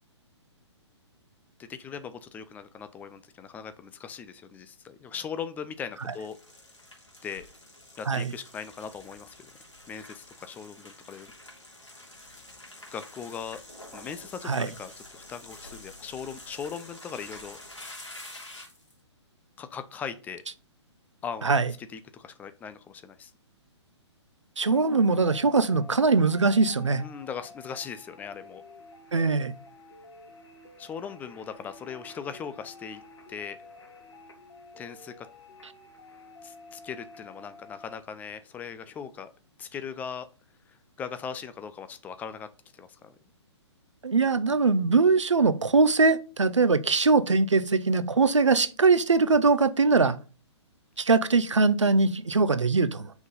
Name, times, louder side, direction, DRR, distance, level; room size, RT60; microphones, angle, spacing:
voice 1, 1.6-6.4 7.2-7.5 8.0-9.5 9.9-11.3 12.9-13.6 13.9-17.6 19.6-20.4 21.2-21.5 21.8-23.3 27.0-28.6 30.8-33.0 33.3-33.6 34.8-35.3 36.4-39.3 39.6-40.3 40.7-42.5 42.7-43.1 49.9-50.1, left 7 dB, 10° left, 0.4 m, -39 dB
sound 1, 5.9-18.9, left 1 dB, 85° left, 3.4 m, -48 dB
sound 2, 24.6-38.0, left 3 dB, 70° left, 3.2 m, -50 dB
voice 2, 24.6-27.0 29.1-29.5 44.0-50.2 51.0-53.1, right 4 dB, 80° right, 0.8 m, -22 dB
6.2 x 5.4 x 5.3 m
figure-of-eight pair, 125°, 15 cm